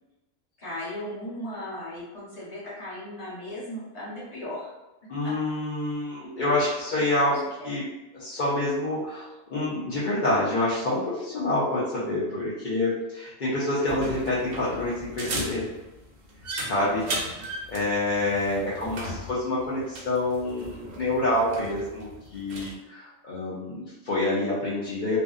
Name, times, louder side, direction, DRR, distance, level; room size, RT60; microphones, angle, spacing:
voice 1, 0.6-4.7 5.2-5.3 6.9-7.7 16.8-17.4, left 1 dB, 30° left, -9 dB, 1.0 m, -37 dB
voice 2, 5.1-7.8 8.1-15.6 16.6-17.0 17.7-25.2, left 2 dB, 50° left, -10 dB, 0.6 m, -27 dB
sound 1, 13.9-22.7, right 1 dB, 60° right, 0.7 m, -37 dB
2.6 x 2.1 x 2.4 m, 1.0 s
omnidirectional pair, 1.4 m